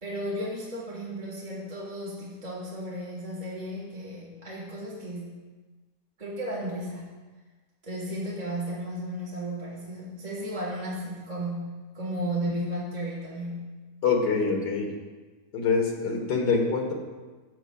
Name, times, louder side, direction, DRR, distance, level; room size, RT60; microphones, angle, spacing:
voice 1, 0.0-5.4 6.2-7.1 7.8-13.7, equal, 25° right, -5 dB, 1.5 m, -34 dB
voice 2, 14.0-14.9 15.5-16.9, left 4 dB, 80° left, 1 dB, 1.9 m, -25 dB
13.5 x 8.0 x 2.3 m, 1.3 s
omnidirectional pair, 1.8 m